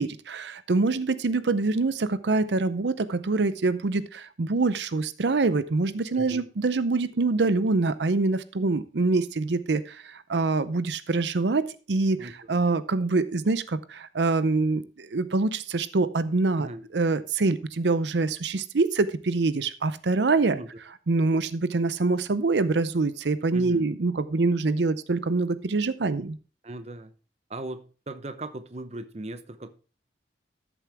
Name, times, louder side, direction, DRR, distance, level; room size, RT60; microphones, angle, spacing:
voice 1, 0.0-20.6 21.1-26.4, right 3 dB, 80° right, 0.6 m, -25 dB
voice 2, 6.1-6.5 12.2-12.3 16.6-16.8 20.5-20.7 23.5-23.9 26.6-27.1 27.5-29.7, right 2 dB, 35° right, 0.8 m, -38 dB
13.0 x 7.2 x 3.4 m
head